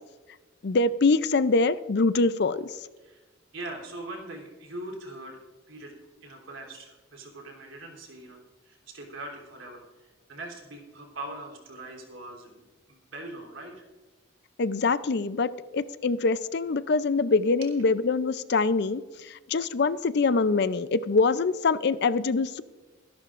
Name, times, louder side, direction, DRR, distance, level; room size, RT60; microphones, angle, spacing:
voice 1, 0.6-2.7 14.6-19.0 19.3-22.6, left 3 dB, 55° left, 15 dB, 0.5 m, -24 dB
voice 2, 3.5-5.4 5.7-5.9 6.2-13.8, right 2 dB, 80° right, 1 dB, 3.5 m, -42 dB
24.0 x 11.5 x 2.5 m, 1.2 s
head